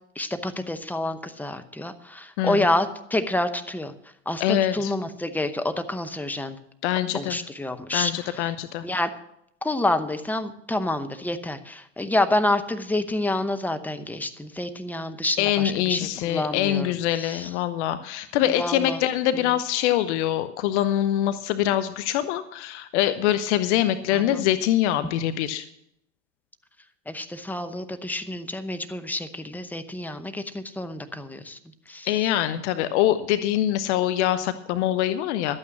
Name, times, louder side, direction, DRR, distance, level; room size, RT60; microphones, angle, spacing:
voice 1, 0.2-3.9 4.3-6.6 7.1-8.1 8.8-9.1 9.6-16.9 17.2-17.5 18.6-19.0 24.3-24.4 27.1-31.6 31.9-32.1, left 1 dB, 5° left, 9 dB, 0.8 m, -28 dB
voice 2, 4.4-4.9 6.8-7.4 7.9-8.9 15.4-25.6 32.0-35.6, left 12 dB, 60° left, 12 dB, 0.8 m, -24 dB
12.0 x 8.8 x 6.2 m, 0.75 s
hypercardioid pair, 95°, 38 cm